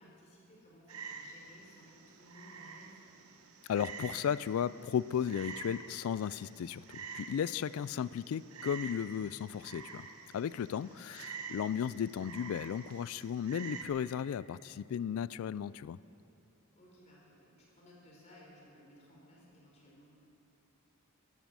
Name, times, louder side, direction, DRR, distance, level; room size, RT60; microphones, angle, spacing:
voice 1, 0.0-3.0 7.6-8.0 10.7-11.2 16.7-20.0, equal, 35° left, -3 dB, 3.9 m, -59 dB
Frog, 0.9-13.8, right 5 dB, 85° right, 1.1 m, -48 dB
voice 2, 3.7-10.1 10.3-16.0, left 8 dB, 75° left, 19 dB, 0.3 m, -35 dB
13.5 x 12.0 x 7.6 m, 2.7 s
head